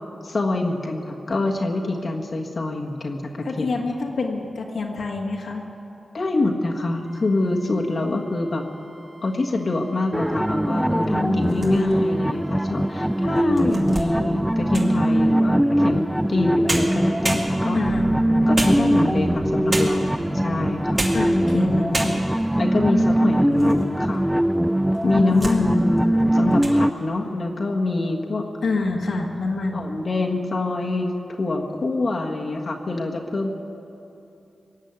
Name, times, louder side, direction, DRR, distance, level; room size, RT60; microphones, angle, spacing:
voice 1, 0.2-3.7 6.1-8.7 9.2-17.8 18.5-20.2 20.4-21.1 21.5-22.0 22.6-24.3 25.0-28.5 29.7-31.1 31.4-33.5, left 2 dB, 60° left, 1 dB, 1.6 m, -25 dB
voice 2, 3.4-5.6 11.1-12.1 17.7-18.1 21.1-22.2 25.2-25.8 28.6-29.9, left 3 dB, 75° left, 0 dB, 1.7 m, -27 dB
sound 1, 7.0-13.4 17.9-23.9, right 2 dB, 70° right, 1.7 m, -39 dB
sound 2, 10.1-26.9, equal, 5° right, 0.3 m, -21 dB
sound 3, 11.4-12.1 12.7-12.8 13.4-15.0 16.3-16.4 16.7-17.9 18.5-19.2 19.7-20.2 20.8-21.3 21.6-21.7 21.9-22.5 23.0-23.8 24.1-24.2 24.9-25.6 26.0-26.2 26.5-26.8, right 2 dB, 45° right, 2.4 m, -30 dB
19.0 x 7.4 x 9.6 m, 2.8 s
cardioid pair, 45°, 0 cm